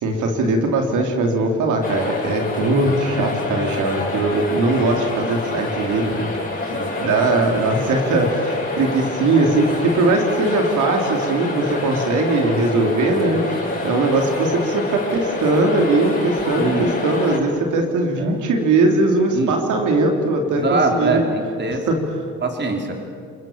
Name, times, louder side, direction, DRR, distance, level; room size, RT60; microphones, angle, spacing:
voice 1, 0.0-6.3 6.7-13.4 13.8-21.3 21.9-22.0, right 2 dB, 80° right, 2 dB, 3.3 m, -20 dB
sound 1, 1.8-17.4, left 2 dB, 30° left, 8.0 m, -27 dB
voice 2, 16.6-16.9 18.2-18.3 19.3-19.5 20.6-21.9 22.4-22.9, right 3 dB, 35° right, 3 dB, 4.1 m, -23 dB
29.5 x 22.0 x 7.4 m, 2.3 s
cardioid pair, 125°, 30 cm